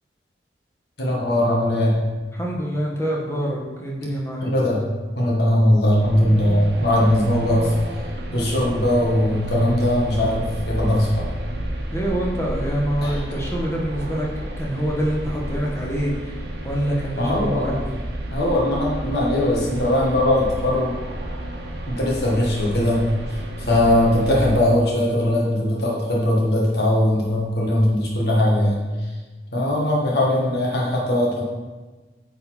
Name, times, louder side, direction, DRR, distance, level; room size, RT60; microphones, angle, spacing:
voice 1, 1.0-2.0 4.4-4.8 5.2-7.7 8.3-11.1 13.0-13.2 17.2-17.8 18.3-20.9 21.9-28.8 29.5-31.4, left 1 dB, 65° left, -3 dB, 1.5 m, -20 dB
voice 2, 2.3-4.5 11.9-16.3 16.6-17.8, right 1 dB, 15° left, -3 dB, 1.3 m, -26 dB
sound 1, 6.0-24.6, right 1 dB, 65° right, 1.1 m, -31 dB
9.1 x 4.1 x 4.3 m, 1.3 s
head